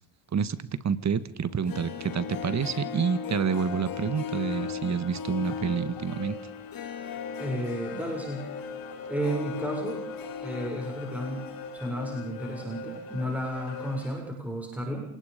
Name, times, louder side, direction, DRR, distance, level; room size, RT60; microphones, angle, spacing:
voice 1, 0.8-6.4, right 6 dB, 35° right, 14 dB, 1.8 m, -28 dB
Harp, 1.5-12.5 12.8-12.9, left 7 dB, 50° left, 2.5 m, -38 dB
sound 1, 1.6-14.2, left 4 dB, 90° left, 7.1 m, -42 dB
voice 2, 7.4-8.5 9.1-10.0 10.4-11.5 11.7-15.0, equal, 5° right, 0 dB, 6.9 m, -32 dB
27.5 x 19.5 x 5.3 m, 0.64 s
supercardioid pair, 85°, 45 cm